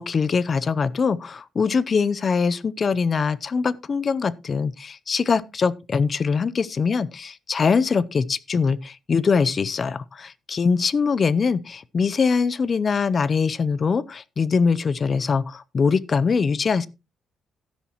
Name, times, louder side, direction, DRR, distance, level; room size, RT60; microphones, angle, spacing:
voice 1, 0.0-16.9, left 5 dB, 40° left, 0.7 m, -22 dB
12.5 x 10.5 x 3.0 m
cardioid pair, 90°, 0 cm